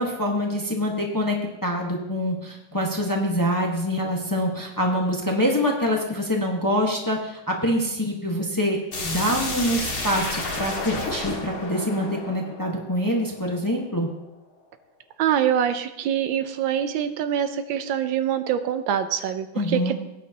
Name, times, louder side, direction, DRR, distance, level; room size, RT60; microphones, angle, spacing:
voice 1, 0.0-14.1 19.5-19.9, equal, 10° left, 0 dB, 1.1 m, -25 dB
sound 1, 8.9-13.6, left 2 dB, 90° left, 2.9 m, -31 dB
voice 2, 15.2-19.9, right 9 dB, 80° right, 10 dB, 1.4 m, -24 dB
18.0 x 9.3 x 2.9 m, 0.96 s
omnidirectional pair, 2.1 m